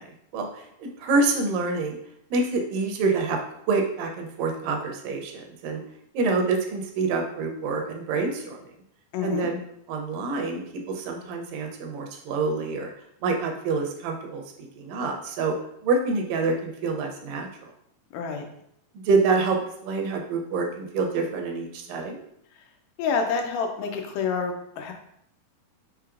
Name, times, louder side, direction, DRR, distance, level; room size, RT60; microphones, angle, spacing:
voice 1, 0.3-2.0 2.3-3.4 3.7-5.8 6.1-8.6 9.2-9.6 9.9-10.6 10.9-12.9 13.2-14.4 14.8-15.5 15.8-17.7 18.9-22.2, right 3 dB, 85° right, 3 dB, 2.2 m, -26 dB
voice 2, 9.1-9.5 18.1-18.4 23.0-24.9, left 5 dB, 80° left, 3 dB, 2.1 m, -28 dB
5.7 x 3.0 x 2.4 m, 0.73 s
omnidirectional pair, 3.8 m